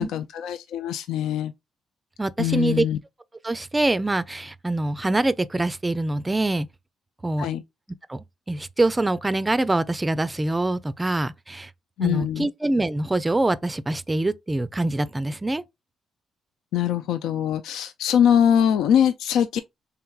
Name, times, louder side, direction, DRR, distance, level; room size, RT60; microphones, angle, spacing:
voice 1, 0.0-1.5 2.4-3.0 7.4-7.6 12.0-12.5 16.7-19.6, left 9 dB, 85° left, 0.3 m, -22 dB
voice 2, 2.2-2.9 3.4-6.7 7.2-7.5 8.1-11.7 12.0-15.6, right 2 dB, 15° right, 0.4 m, -24 dB
4.5 x 3.5 x 2.3 m
cardioid pair, 90°, 0 cm